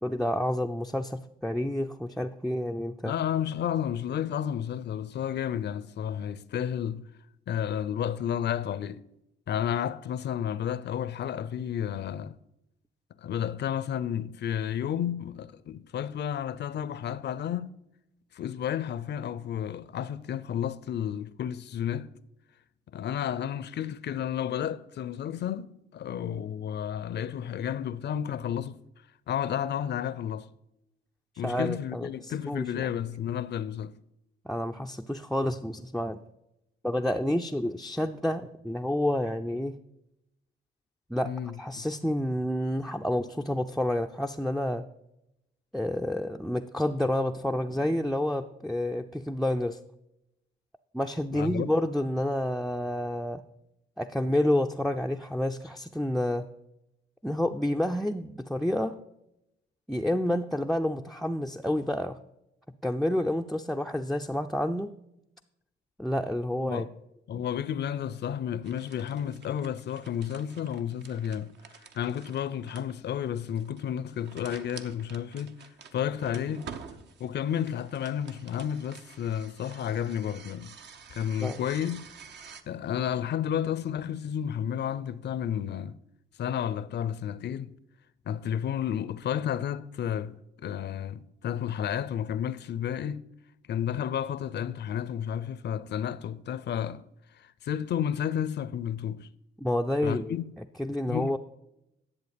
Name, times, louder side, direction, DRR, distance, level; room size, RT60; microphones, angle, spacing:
voice 1, 0.0-3.1 31.4-32.9 34.5-36.2 36.8-39.8 41.1-41.3 41.6-44.8 45.7-49.8 50.9-53.4 54.0-56.5 57.2-59.0 59.9-62.2 62.8-64.9 66.0-66.8 67.3-67.5 81.4-81.6 99.6-100.3 100.8-101.4, left 1 dB, ahead, 0.4 m, -29 dB
voice 2, 3.0-7.1 7.5-9.0 9.5-12.4 13.2-17.7 18.3-22.1 22.9-28.8 29.3-30.5 31.4-33.9 41.2-41.9 51.3-51.7 66.6-66.9 67.3-71.5 71.9-75.6 75.9-76.7 77.2-80.7 81.1-82.1 82.7-86.0 86.4-87.7 88.3-93.2 93.7-97.0 97.4-99.3 100.0-100.4 101.1-101.3, left 9 dB, 60° left, 0.6 m, -32 dB
sound 1, 68.6-82.6, right 6 dB, 60° right, 0.9 m, -49 dB
11.0 x 7.4 x 5.2 m
cardioid pair, 90°, 20 cm